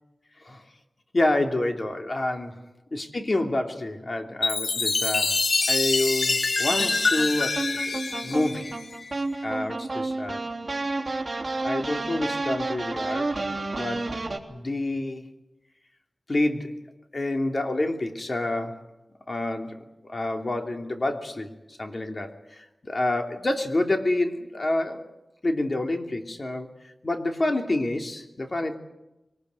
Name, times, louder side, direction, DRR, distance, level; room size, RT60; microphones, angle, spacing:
voice 1, 1.1-2.6 2.9-5.4 5.7-8.7 9.4-10.4 11.6-13.3 13.7-14.1 14.5-15.3 16.3-16.8 17.1-18.8 19.3-25.1 25.4-26.7 27.0-28.8, left 2 dB, 45° left, 4 dB, 3.0 m, -28 dB
Chime, 4.4-9.1, left 3 dB, 65° left, 1.4 m, -25 dB
sound 1, 6.7-14.4, right 2 dB, 40° right, 3.6 m, -31 dB
23.5 x 19.5 x 9.5 m, 0.96 s
wide cardioid pair, 75°, 0 cm